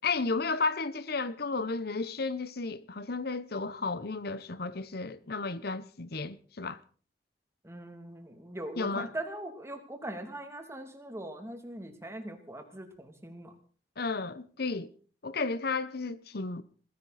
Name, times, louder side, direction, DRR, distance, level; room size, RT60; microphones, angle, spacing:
voice 1, 0.0-6.8 8.8-9.1 14.0-14.9 15.2-16.6, left 3 dB, 60° left, 1.0 m, -33 dB
voice 2, 7.6-13.5, right 1 dB, 15° right, 2.9 m, -41 dB
21.5 x 16.0 x 4.3 m
head